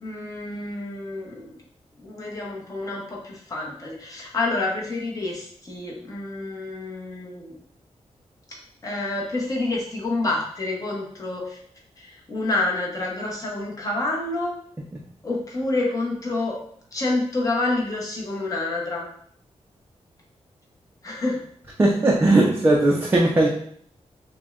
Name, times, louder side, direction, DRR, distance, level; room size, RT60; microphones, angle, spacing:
voice 1, 0.0-1.5 2.0-7.6 8.8-11.6 12.0-14.5 15.2-16.6 16.9-19.1 21.0-21.4, left 2 dB, 30° left, -3 dB, 0.8 m, -28 dB
voice 2, 21.8-23.5, right 2 dB, 20° right, -3 dB, 0.4 m, -18 dB
6.2 x 2.1 x 2.4 m, 0.62 s
wide cardioid pair, 180°, 12 cm